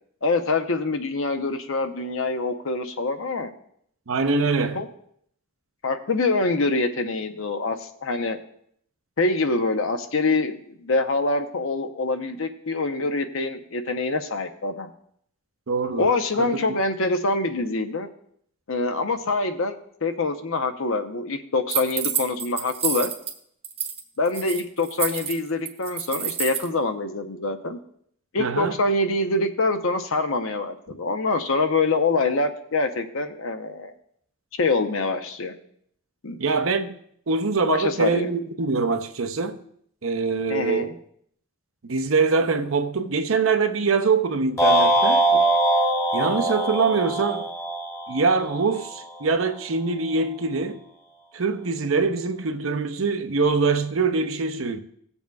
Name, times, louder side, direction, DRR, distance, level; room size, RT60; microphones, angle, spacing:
voice 1, 0.2-3.5 4.7-4.9 5.8-8.4 9.2-14.9 16.0-18.1 18.7-23.1 24.2-27.8 28.3-33.9 34.5-35.5 36.2-36.4 37.7-38.3 40.5-40.9 45.3-45.4, left 3 dB, 70° left, 0.8 m, -25 dB
voice 2, 4.1-4.8 15.7-16.1 16.4-16.5 28.4-28.7 36.4-37.0 37.3-39.6 40.0-40.9 41.8-45.2 46.1-47.5 48.1-50.8 51.3-54.8, right 4 dB, 70° right, 0.7 m, -23 dB
sound 1, 21.7-23.3 23.6-24.0 24.3-26.7, right 8 dB, 30° right, 0.9 m, -28 dB
sound 2, 44.6-48.9, right 1 dB, 15° left, 1.1 m, -22 dB
18.0 x 7.0 x 2.3 m
head